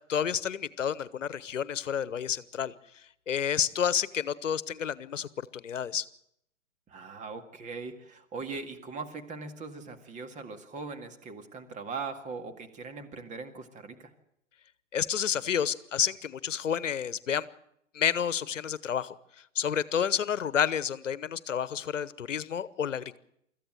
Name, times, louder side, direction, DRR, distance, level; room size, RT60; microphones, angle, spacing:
voice 1, 0.1-2.7 3.3-6.0 14.9-17.5 17.9-19.1 19.5-23.2, left 8 dB, 75° left, 17 dB, 1.1 m, -30 dB
voice 2, 6.9-14.1, right 4 dB, 20° right, 7 dB, 2.0 m, -40 dB
25.0 x 14.5 x 7.8 m, 0.76 s
figure-of-eight pair, 120°, 38 cm